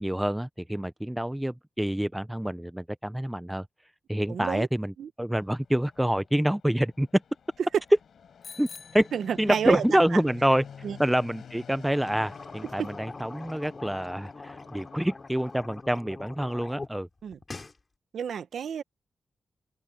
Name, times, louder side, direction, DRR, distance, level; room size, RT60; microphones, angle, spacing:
voice 1, 0.0-3.7 4.1-7.2 8.6-8.7 8.9-9.1 9.4-10.6 11.0-17.1, right 1 dB, 5° right, 0.3 m, -27 dB
voice 2, 4.3-4.7 5.0-5.1 9.1-10.2 10.8-11.0 12.8-12.9 17.2-17.4 18.1-18.8, right 7 dB, 75° right, 0.7 m, -30 dB
Fixed-wing aircraft airplane, 5.4-15.6, left 7 dB, 70° left, 3.7 m, -49 dB
Bicycle bell, 8.4-10.0, left 6 dB, 50° left, 1.2 m, -48 dB
sound 1, 11.8-16.9 17.2-17.8, left 3 dB, 25° left, 2.4 m, -43 dB
open air
wide cardioid pair, 165°, 0 cm